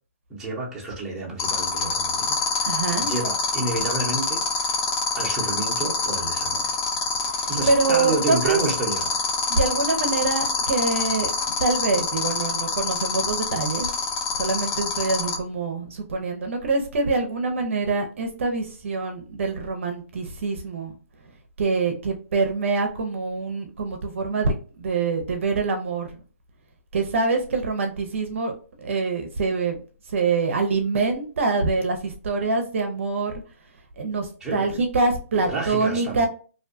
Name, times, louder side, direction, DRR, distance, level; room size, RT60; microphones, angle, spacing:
voice 1, 0.3-4.7 5.2-6.7 7.5-9.2 34.4-34.6 35.5-36.3, right 2 dB, 5° right, -6 dB, 0.8 m, -30 dB
sound 1, 1.4-15.3, left 5 dB, 25° left, 0.4 m, -25 dB
voice 2, 2.7-3.1 7.3-8.6 9.5-11.3 11.6-13.9 14.3-20.9 21.6-26.1 26.9-29.8 30.1-33.4 34.0-36.3, right 3 dB, 60° right, 4 dB, 0.5 m, -25 dB
2.6 x 2.2 x 2.5 m, 0.38 s
hypercardioid pair, 145°, 8 cm